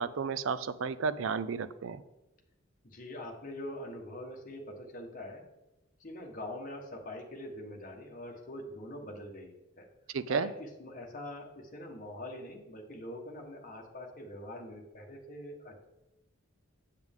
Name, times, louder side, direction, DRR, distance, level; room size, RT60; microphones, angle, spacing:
voice 1, 0.0-2.0 10.1-10.5, right 5 dB, 70° right, 13 dB, 0.4 m, -32 dB
voice 2, 2.8-5.4 6.0-9.9 10.3-15.9, left 1 dB, 40° left, 1 dB, 1.3 m, -44 dB
7.9 x 7.4 x 3.6 m, 0.98 s
head